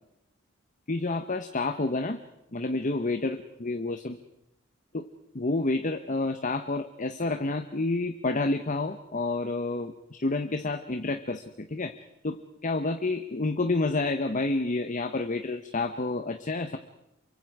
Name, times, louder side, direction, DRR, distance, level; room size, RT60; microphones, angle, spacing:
voice 1, 0.9-2.2 2.5-4.2 4.9-5.0 5.3-11.9 12.2-16.8, left 2 dB, 40° left, 7 dB, 1.1 m, -29 dB
28.0 x 24.0 x 4.9 m, 0.88 s
head